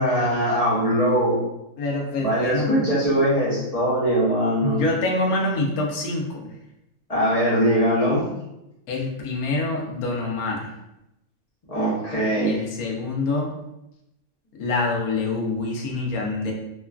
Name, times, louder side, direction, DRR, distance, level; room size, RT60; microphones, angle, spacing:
voice 1, 0.0-1.4 2.2-4.8 7.1-8.3 11.7-12.6, equal, 30° left, -8 dB, 0.8 m, -21 dB
voice 2, 1.8-2.7 4.6-6.5 8.9-10.7 12.4-13.5 14.5-16.5, left 3 dB, 80° left, -1 dB, 1.1 m, -26 dB
3.0 x 2.3 x 2.3 m, 0.88 s
omnidirectional pair, 1.5 m